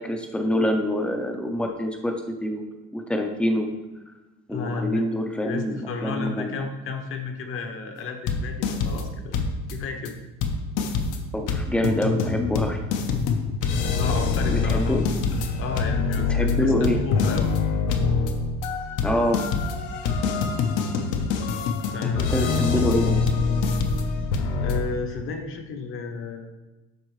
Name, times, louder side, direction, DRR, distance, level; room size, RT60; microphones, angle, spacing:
voice 1, 0.0-2.1 2.4-2.6 2.9-3.7 4.5-6.6 11.3-12.8 14.5-15.4 16.3-17.0 19.0-19.4 22.0-23.3, equal, 5° left, 3 dB, 0.5 m, -26 dB
voice 2, 4.5-5.0 5.4-9.4 9.7-10.2 13.9-15.0 15.3-17.6 21.8-22.6 24.6-26.5, left 4 dB, 40° left, 5 dB, 0.9 m, -33 dB
sound 1, 8.3-9.1 9.3-9.7 10.0-10.1 10.4-24.8, left 4 dB, 75° left, 0.9 m, -25 dB
12.0 x 4.4 x 3.1 m, 1.1 s
cardioid pair, 175°, 32 cm